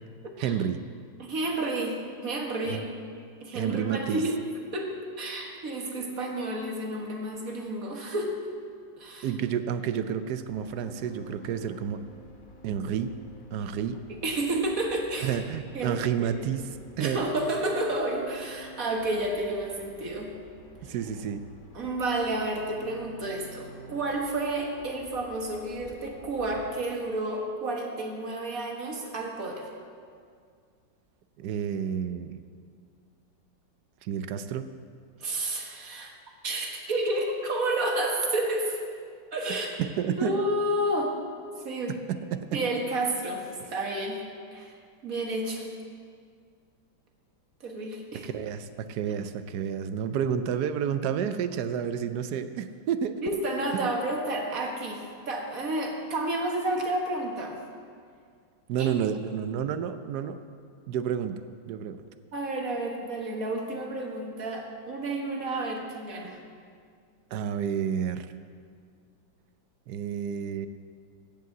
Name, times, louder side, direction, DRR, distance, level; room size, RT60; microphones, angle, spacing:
voice 1, 0.4-0.8 2.7-2.9 3.5-4.2 9.2-12.0 12.6-13.1 13.5-14.0 15.2-16.6 17.0-17.2 20.8-21.4 31.4-32.4 34.0-34.7 39.8-40.4 42.1-42.6 48.2-53.2 53.7-53.9 58.7-60.4 60.9-62.0 67.3-68.3 69.9-70.7, right 8 dB, 70° right, 11 dB, 1.0 m, -30 dB
voice 2, 1.2-2.9 3.4-4.4 4.7-8.4 9.0-9.3 14.1-15.4 15.7-16.3 17.0-20.3 21.7-29.7 35.2-36.1 36.4-38.8 39.3-39.8 40.2-41.1 41.7-42.0 42.5-43.4 43.7-44.2 44.5-44.7 45.0-45.6 47.6-48.3 53.2-57.6 58.8-58.9 62.3-66.4, right 1 dB, 50° right, 1 dB, 1.7 m, -30 dB
sound 1, 10.5-26.6, left 1 dB, 45° left, 0.6 m, -50 dB
15.0 x 5.5 x 8.2 m, 2.1 s
omnidirectional pair, 2.1 m